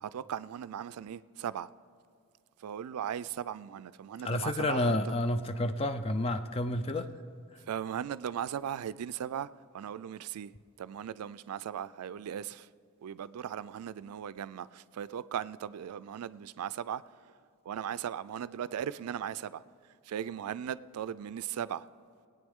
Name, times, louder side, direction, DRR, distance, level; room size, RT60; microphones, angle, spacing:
voice 1, 0.0-1.7 2.6-5.1 7.7-9.5 9.7-10.5 10.8-12.7 13.0-17.0 17.7-19.6 20.1-21.9, right 9 dB, 90° right, 0.3 m, -38 dB
voice 2, 4.2-7.1, left 1 dB, 25° left, 0.4 m, -30 dB
20.0 x 8.9 x 3.6 m
head